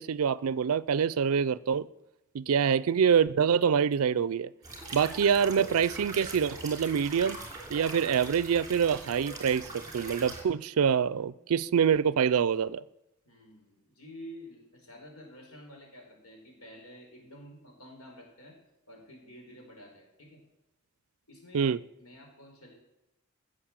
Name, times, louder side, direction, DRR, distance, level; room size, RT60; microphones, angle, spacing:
voice 1, 0.0-1.9 2.3-4.5 4.9-7.4 7.7-12.8 21.5-21.8, right 7 dB, 80° right, 0.4 m, -25 dB
sound 1, 4.6-10.4, right 2 dB, 15° right, 2.8 m, -42 dB
voice 2, 13.2-18.6 18.9-20.4 21.3-21.7 22.0-22.7, equal, 80° left, 4.8 m, -50 dB
15.5 x 7.6 x 7.4 m
head